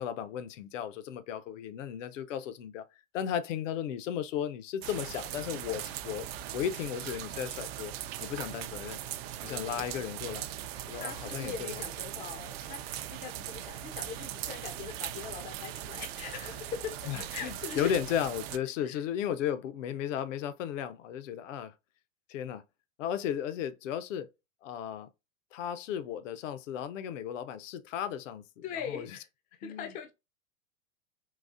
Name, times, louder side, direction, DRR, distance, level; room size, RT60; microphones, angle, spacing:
voice 1, 0.0-2.8 3.1-6.3 6.5-7.9 8.2-9.0 9.4-10.5 10.9-11.7 17.1-21.7 22.3-22.6 23.0-24.3 24.6-25.1 25.5-29.1 29.6-29.9, left 9 dB, 60° left, 0.7 m, -35 dB
sound 1, 4.8-18.6, right 12 dB, 45° right, 0.4 m, -40 dB
voice 2, 9.5-10.1 10.9-17.9 18.8-19.0 28.6-29.3 29.6-30.1, left 7 dB, 20° left, 0.4 m, -41 dB
4.0 x 2.4 x 2.5 m
hypercardioid pair, 110°, 42 cm